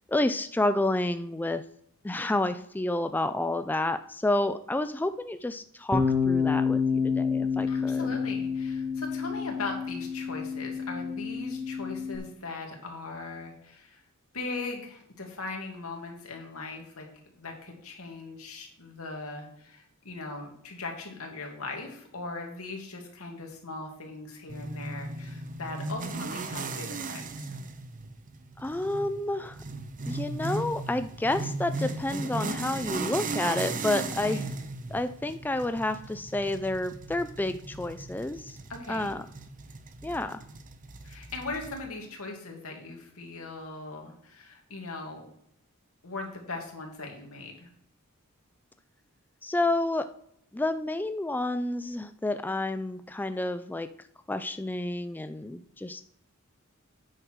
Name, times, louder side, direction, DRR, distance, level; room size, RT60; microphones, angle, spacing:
voice 1, 0.1-1.6 2.0-8.1 28.6-29.6 30.1-34.4 34.9-38.6 38.9-39.2 40.0-40.4 49.4-50.1 50.5-53.9 54.3-56.0, left 2 dB, 10° left, 10 dB, 0.3 m, -29 dB
Bass guitar, 5.9-12.2, left 5 dB, 15° right, 1.1 m, -28 dB
voice 2, 7.7-14.0 14.3-17.1 17.4-27.5 34.2-34.5 38.7-39.1 41.0-45.3 46.0-47.7, left 3 dB, 85° left, 1 dB, 2.4 m, -39 dB
sound 1, 24.5-41.8, right 3 dB, 40° right, 0.8 m, -37 dB
8.9 x 6.5 x 4.6 m, 0.73 s
head